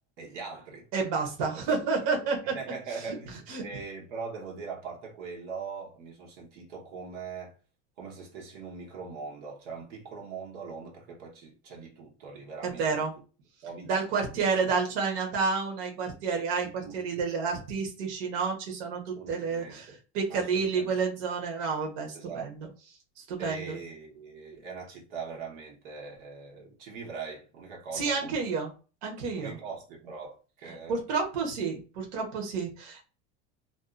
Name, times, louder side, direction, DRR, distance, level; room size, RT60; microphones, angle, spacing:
voice 1, 0.2-0.9 1.5-2.1 2.5-7.5 8.0-13.1 13.6-13.9 14.3-14.5 16.6-17.0 19.2-19.8 20.3-20.9 22.1-22.7 23.4-28.5 29.4-31.0, right 5 dB, 85° right, 1.0 m, -41 dB
voice 2, 0.9-2.6 2.9-3.0 3.5-3.6 12.6-13.1 13.9-22.7 23.2-23.8 27.9-28.7 29.0-29.6 30.9-33.1, right 5 dB, 70° right, 1.0 m, -30 dB
2.6 x 2.3 x 2.3 m
supercardioid pair, 150°, 36 cm